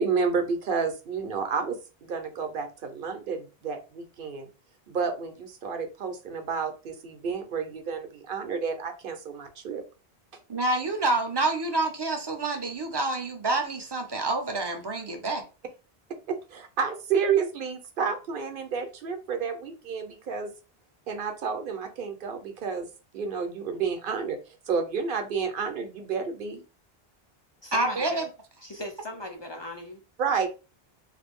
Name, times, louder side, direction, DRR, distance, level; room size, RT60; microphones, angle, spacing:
voice 1, 0.0-4.5 4.9-9.8 16.3-20.5 21.1-22.9 23.1-24.4 24.7-26.6 30.2-30.5, right 5 dB, 60° right, 0.8 m, -30 dB
voice 2, 10.5-15.4 27.7-28.2, right 2 dB, 30° right, 0.6 m, -27 dB
voice 3, 27.6-28.3 28.6-30.0, left 1 dB, 35° left, 0.5 m, -38 dB
3.2 x 2.2 x 3.5 m
omnidirectional pair, 1.0 m